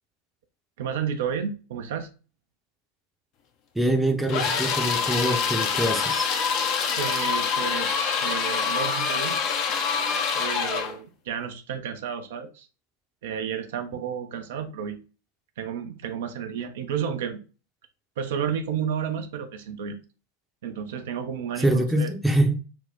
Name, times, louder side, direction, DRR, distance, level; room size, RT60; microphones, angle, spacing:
voice 1, 0.8-2.1 7.0-9.4 10.3-12.7 13.2-15.0 15.6-17.4 18.2-20.0 20.6-22.1, right 8 dB, 55° right, 0.5 m, -31 dB
voice 2, 3.8-6.3 21.6-22.6, right 1 dB, 5° right, 0.7 m, -24 dB
sound 1, 4.3-11.0, left 6 dB, 40° left, 0.6 m, -25 dB
4.4 x 2.1 x 3.9 m
figure-of-eight pair, 90°, 0 cm